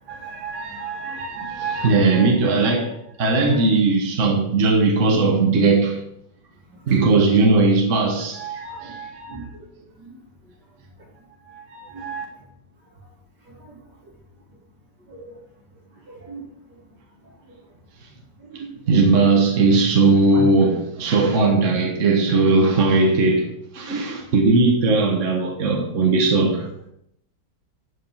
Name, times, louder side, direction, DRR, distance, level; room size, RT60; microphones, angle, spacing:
voice 1, 0.1-6.0 6.9-9.5 11.5-12.2 18.5-18.6 18.9-26.7, right 3 dB, 45° right, 1.5 m, -19 dB
voice 2, 6.8-7.2 8.7-8.9 9.3-9.5 10.0-10.2 11.9-12.1 13.5-13.8 15.1-15.4 16.1-16.5 17.5-17.6 18.4-18.7 20.3-20.5, right 2 dB, 70° right, 3.4 m, -38 dB
11.5 x 5.2 x 5.5 m
omnidirectional pair, 1.9 m